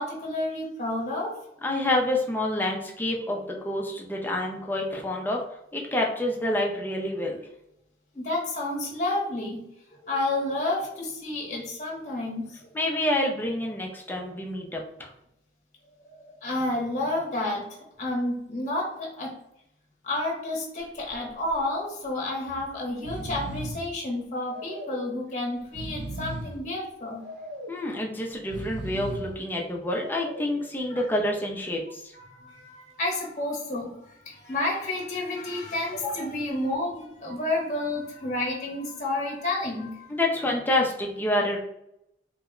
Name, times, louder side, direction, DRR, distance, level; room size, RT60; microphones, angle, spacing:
voice 1, 0.0-1.4 8.1-9.7 10.0-12.7 16.0-17.7 18.0-19.4 20.0-27.3 30.9-31.0 32.1-40.1, left 2 dB, 40° left, -2 dB, 0.8 m, -30 dB
voice 2, 1.6-5.4 5.7-7.4 12.7-15.1 27.7-32.1 40.1-41.6, left 1 dB, 10° left, -1 dB, 0.4 m, -28 dB
Breathing, 20.8-21.2 21.5-21.6 22.4-22.6 22.9-23.9 24.5-25.1 25.6-26.6 27.2-27.8 28.4-29.4 29.9-30.6, right 1 dB, 75° right, 0.7 m, -37 dB
2.9 x 2.1 x 3.6 m, 0.80 s
head